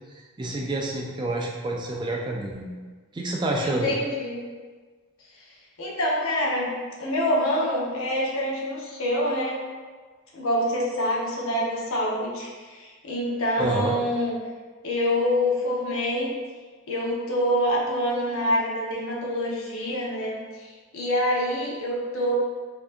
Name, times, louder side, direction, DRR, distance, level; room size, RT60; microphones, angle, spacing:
voice 1, 0.1-2.7 3.1-3.9 13.6-13.9, right 2 dB, 20° right, -1 dB, 0.3 m, -28 dB
voice 2, 3.6-4.4 5.8-6.7 7.0-9.6 10.3-14.3 14.8-16.3 16.9-22.3, equal, 65° left, -4 dB, 0.8 m, -26 dB
4.3 x 2.8 x 2.5 m, 1.4 s
head